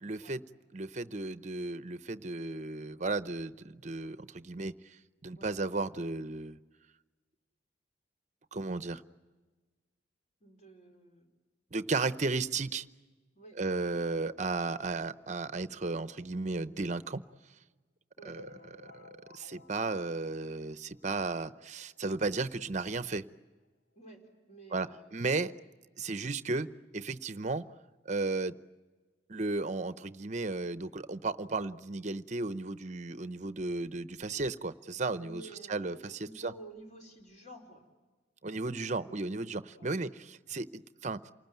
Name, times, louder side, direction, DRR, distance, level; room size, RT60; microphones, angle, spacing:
voice 1, 0.0-0.4 0.7-4.7 5.2-6.6 8.5-9.0 11.7-12.9 13.6-17.2 18.2-18.4 18.8-19.0 19.3-23.2 24.7-25.5 26.0-27.6 28.1-28.6 29.3-35.4 35.7-36.5 38.4-41.3, right 3 dB, 40° right, 13 dB, 0.7 m, -34 dB
voice 2, 10.4-11.3 13.3-13.6 18.2-18.4 24.0-25.0 35.2-37.9 39.0-39.4 39.7-39.9, right 2 dB, 40° left, 3 dB, 4.5 m, -52 dB
sound 1, 18.4-21.2 21.7-21.8 22.0-22.1 22.4-22.5 23.4-23.5 23.9-24.0, left 2 dB, 85° left, 2.2 m, -55 dB
28.0 x 19.5 x 9.2 m, 1.3 s
head